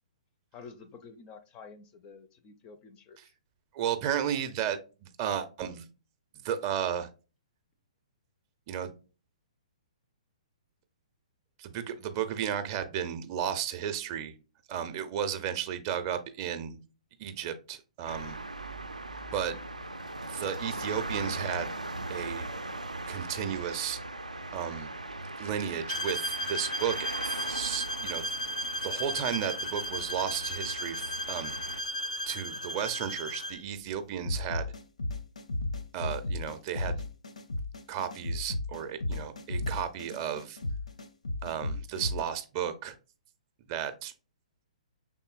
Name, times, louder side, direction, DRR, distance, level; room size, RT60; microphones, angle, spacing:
voice 1, 0.5-3.3, left 5 dB, 25° left, 0.4 m, -50 dB
voice 2, 3.7-5.9 6.4-7.1 8.7-8.9 11.6-14.3 14.7-16.8 17.2-18.4 19.3-19.6 20.2-21.7 22.1-22.5 23.1-24.0 24.5-24.9 25.4-28.5 28.8-31.5 32.3-34.7 35.9-37.0 37.9-40.6 41.4-43.0 43.7-44.1, right 9 dB, 30° right, 0.5 m, -34 dB
sound 1, 18.1-31.8, right 2 dB, 85° right, 0.4 m, -39 dB
sound 2, 25.9-33.6, equal, 90° left, 1.0 m, -35 dB
sound 3, 34.3-42.2, left 2 dB, 70° left, 0.6 m, -34 dB
5.5 x 3.6 x 2.4 m
figure-of-eight pair, 120°, 4 cm